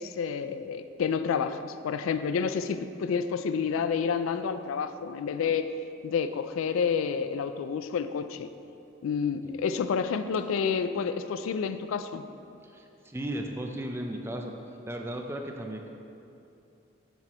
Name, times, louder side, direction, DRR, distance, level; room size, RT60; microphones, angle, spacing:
voice 1, 0.0-5.7 6.0-8.5 9.0-12.3, left 6 dB, 85° left, 11 dB, 0.3 m, -29 dB
voice 2, 9.4-9.7 12.6-14.6 14.9-15.9, right 1 dB, 10° right, 3 dB, 0.4 m, -36 dB
7.1 x 6.0 x 4.3 m, 2.7 s
head